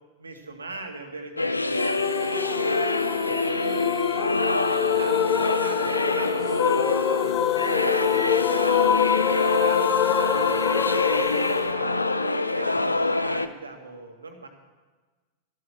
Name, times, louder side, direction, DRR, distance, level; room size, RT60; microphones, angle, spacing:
voice 1, 0.2-1.9 2.2-3.9 4.4-8.3 8.9-12.0 12.5-14.5, right 3 dB, 75° right, 4 dB, 1.9 m, -40 dB
sound 1, 1.4-13.5, left 2 dB, 85° left, 0.5 m, -25 dB
sound 2, 1.8-12.7, left 11 dB, 35° left, 0.5 m, -26 dB
14.0 x 12.5 x 6.2 m, 1.3 s
figure-of-eight pair, 90°, 0 cm